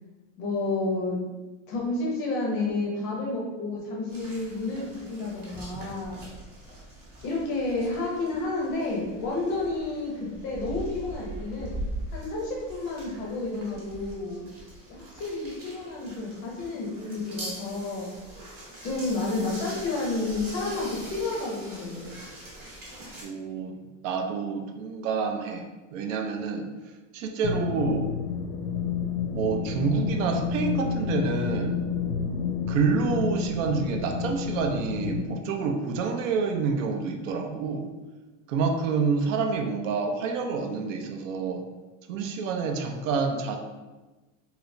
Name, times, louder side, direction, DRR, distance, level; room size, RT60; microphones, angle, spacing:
voice 1, 0.4-1.2 1.7-6.2 7.2-11.8 12.1-14.5 14.9-18.1 18.8-22.2, left 2 dB, 30° left, -3 dB, 0.5 m, -30 dB
sound 1, 4.1-23.2, right 1 dB, 25° right, 0.8 m, -42 dB
voice 2, 23.2-23.8 24.0-26.7 27.1-28.1 29.3-31.8 32.7-37.9 38.5-41.6 42.1-43.6, right 5 dB, 85° right, 4 dB, 0.6 m, -28 dB
sound 2, 27.4-35.2, left 6 dB, 80° left, 0.5 m, -30 dB
3.2 x 2.9 x 2.5 m, 1.2 s
supercardioid pair, 175°, 39 cm